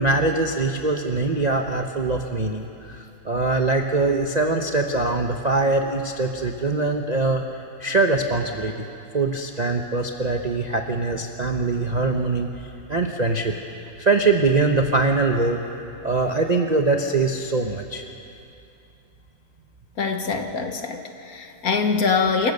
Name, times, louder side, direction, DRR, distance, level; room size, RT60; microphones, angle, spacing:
voice 1, 0.0-7.4 7.8-8.9 9.1-12.5 12.9-13.6 14.0-15.6 16.0-18.1, right 3 dB, 35° right, 2 dB, 0.6 m, -22 dB
voice 2, 20.0-22.5, left 5 dB, 55° left, 5 dB, 1.6 m, -24 dB
27.5 x 15.0 x 6.6 m, 2.7 s
omnidirectional pair, 2.0 m